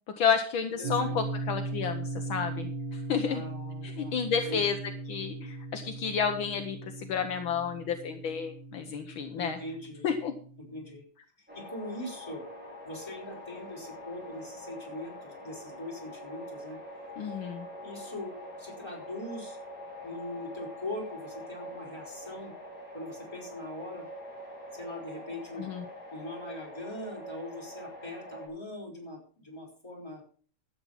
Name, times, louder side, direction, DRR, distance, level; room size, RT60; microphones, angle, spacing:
voice 1, 0.2-3.4 3.8-4.8 5.1-9.6 10.0-10.4 17.2-17.7 25.6-25.9, left 6 dB, 70° left, 6 dB, 1.9 m, -31 dB
voice 2, 0.8-1.1 3.3-4.1 4.5-4.6 9.3-10.1 10.6-11.0 11.4-12.4 12.8-16.8 17.4-17.5 17.8-18.3 18.6-19.6 20.0-22.5 22.9-24.1 24.7-25.7 26.1-30.2, left 1 dB, 10° left, -3 dB, 4.9 m, -41 dB
sound 1, 0.8-11.0, right 2 dB, 30° right, 1.4 m, -39 dB
sound 2, 11.5-28.5, equal, 5° right, 5.1 m, -44 dB
12.5 x 8.6 x 5.9 m, 0.43 s
omnidirectional pair, 2.3 m